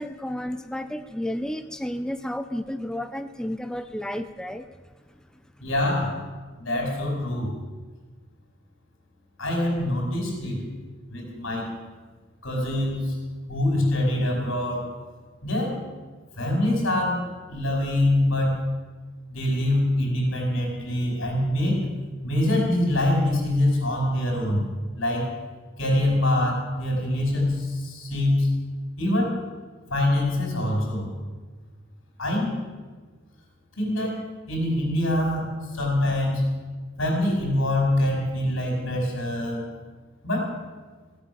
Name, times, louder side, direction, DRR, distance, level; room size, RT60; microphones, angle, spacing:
voice 1, 0.0-4.7, left 1 dB, 5° left, 9 dB, 0.4 m, -32 dB
voice 2, 5.6-6.1 6.6-7.5 9.4-10.6 11.1-11.7 12.4-13.0 13.5-14.9 15.4-15.8 16.4-17.2 17.5-18.6 19.3-21.8 22.2-24.6 25.0-25.3 25.8-28.5 29.0-29.4 29.9-31.1 32.2-32.6 33.8-35.5 35.7-36.4 37.0-39.7 40.2-40.5, left 1 dB, 85° left, 0 dB, 5.2 m, -24 dB
16.0 x 9.1 x 7.1 m, 1.4 s
head